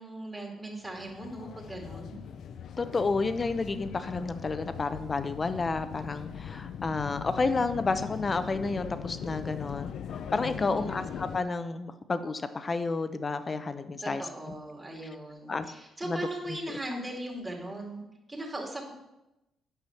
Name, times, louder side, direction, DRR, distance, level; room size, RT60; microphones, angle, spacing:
voice 1, 0.0-2.2 10.6-11.0 13.8-18.0 18.3-18.9, right 1 dB, 20° right, -1 dB, 2.5 m, -39 dB
sound 1, 0.8-11.4, left 7 dB, 70° left, 0.6 m, -40 dB
voice 2, 2.8-14.2 15.5-15.6 16.1-16.2 16.5-16.8, left 3 dB, 30° left, 11 dB, 0.7 m, -31 dB
8.8 x 6.0 x 5.9 m, 0.95 s
cardioid pair, 90°, 0 cm